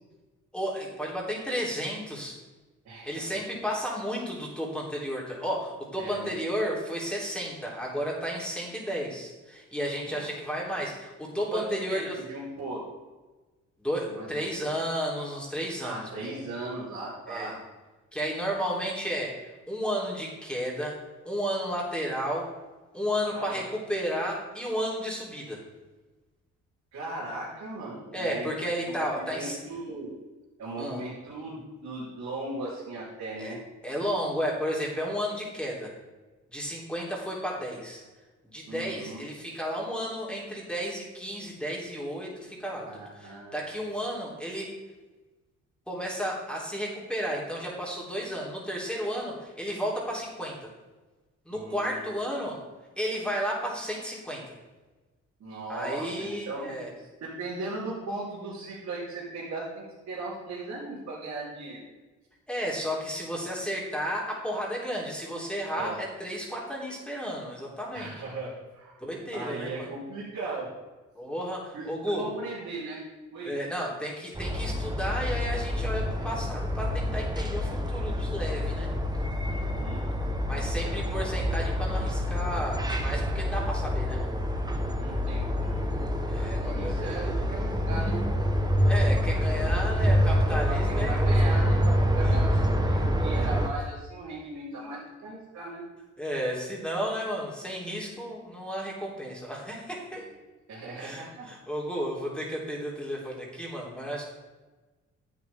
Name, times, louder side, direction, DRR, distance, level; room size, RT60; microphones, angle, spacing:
voice 1, 0.5-2.4 3.1-12.2 13.8-16.3 17.3-17.5 18.1-21.0 21.2-22.5 22.9-25.6 28.1-29.6 30.8-31.0 33.4-33.5 33.8-35.9 36.5-38.0 38.5-42.9 43.1-44.7 45.9-50.7 51.5-52.6 53.0-54.5 55.7-56.9 62.5-68.1 69.0-69.9 71.2-72.3 73.4-78.9 80.5-84.3 86.3-87.5 88.9-91.7 92.2-92.4 94.7-94.8 96.2-100.2 101.0-104.2, equal, 5° left, -4 dB, 3.4 m, -33 dB
voice 2, 2.8-3.3 6.0-6.4 10.1-10.3 11.5-12.8 14.1-14.3 14.6-14.7 15.8-17.6 23.3-23.7 26.9-28.5 29.0-30.1 30.6-33.6 38.7-39.2 42.9-43.7 51.5-52.2 55.4-61.8 65.8-66.0 67.9-69.0 69.3-70.7 71.7-73.6 76.2-76.3 79.5-80.0 80.5-81.0 85.0-86.0 86.3-88.2 90.7-95.9 100.7-101.5, right 2 dB, 65° right, -10 dB, 3.6 m, -38 dB
sound 1, 74.3-93.7, equal, 15° right, 1.1 m, -27 dB
11.5 x 8.3 x 3.6 m, 1.2 s
cardioid pair, 90°, 30 cm